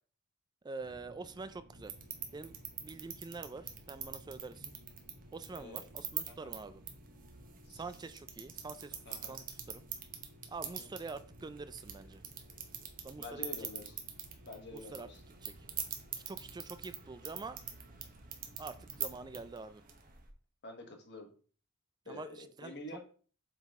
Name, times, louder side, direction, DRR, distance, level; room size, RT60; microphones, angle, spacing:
voice 1, 0.6-1.9 2.3-4.7 5.3-6.8 7.7-9.0 9.3-9.8 10.5-12.2 13.0-13.5 14.7-15.1 15.4-15.5 16.3-17.6 18.6-19.8 22.1-23.0, right 3 dB, 20° right, 12 dB, 0.3 m, -46 dB
sound 1, 0.8-19.5, equal, 80° right, 1.2 m, -58 dB
sound 2, 1.8-20.3, right 8 dB, 40° right, 1.0 m, -45 dB
voice 2, 5.5-5.8 6.3-6.5 7.6-7.8 9.0-9.3 10.6-10.9 13.2-14.0 14.4-15.2 20.6-21.3 22.0-23.0, left 2 dB, 50° left, 4 dB, 1.4 m, -48 dB
7.9 x 3.9 x 3.6 m, 0.41 s
head